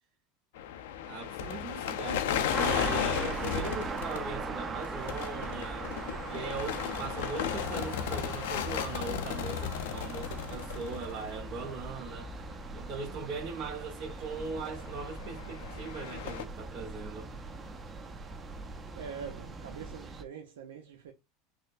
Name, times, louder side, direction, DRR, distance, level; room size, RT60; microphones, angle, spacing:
sound 1, 0.6-11.9 12.2-12.5 12.9-13.0 14.6-16.4, left 9 dB, 80° left, 0.5 m, -35 dB
voice 1, 1.1-5.9 6.3-12.3 12.7-17.3, right 4 dB, 55° right, 0.9 m, -40 dB
sound 2, 2.5-20.2, right 3 dB, 20° right, 0.7 m, -40 dB
sound 3, 5.9-15.3, right 2 dB, 70° right, 1.6 m, -58 dB
voice 2, 18.9-21.1, right 7 dB, 85° right, 0.5 m, -44 dB
6.1 x 2.1 x 2.5 m
supercardioid pair, 110°, 0 cm